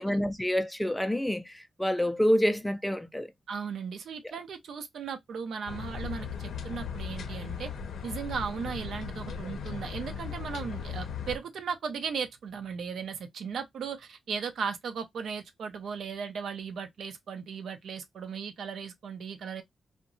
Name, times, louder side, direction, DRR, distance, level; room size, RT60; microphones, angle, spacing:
voice 1, 0.0-3.3, equal, 5° left, 0.3 m, -27 dB
voice 2, 3.5-7.7 8.0-19.6, right 6 dB, 75° right, 0.5 m, -36 dB
sound 1, 5.7-11.4, left 6 dB, 80° left, 0.5 m, -37 dB
2.7 x 2.1 x 2.5 m
wide cardioid pair, 115°, 0 cm